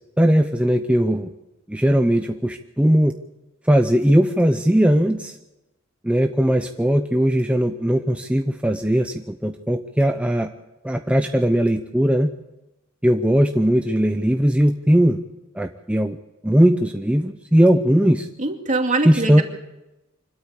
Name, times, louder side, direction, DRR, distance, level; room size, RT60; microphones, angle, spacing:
voice 1, 0.2-1.3 1.7-3.1 3.7-5.4 6.0-10.5 10.8-12.3 13.0-15.2 15.5-16.2 16.4-18.3 19.0-19.4, equal, 5° right, 5 dB, 0.7 m, -19 dB
voice 2, 18.4-19.4, right 2 dB, 40° right, 3 dB, 2.5 m, -23 dB
25.0 x 13.0 x 8.3 m, 1.0 s
head